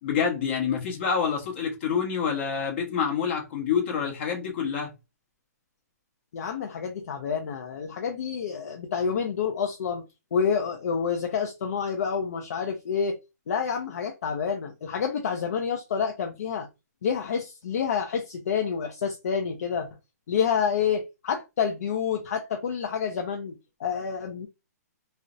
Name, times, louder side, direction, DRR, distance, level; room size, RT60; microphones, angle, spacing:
voice 1, 0.0-4.9, left 7 dB, 40° left, 0.9 m, -27 dB
voice 2, 6.3-10.0 10.3-13.2 13.5-16.7 17.0-19.9 20.3-24.5, left 6 dB, 60° left, 0.5 m, -28 dB
2.4 x 2.0 x 2.5 m
hypercardioid pair, 160°, 9 cm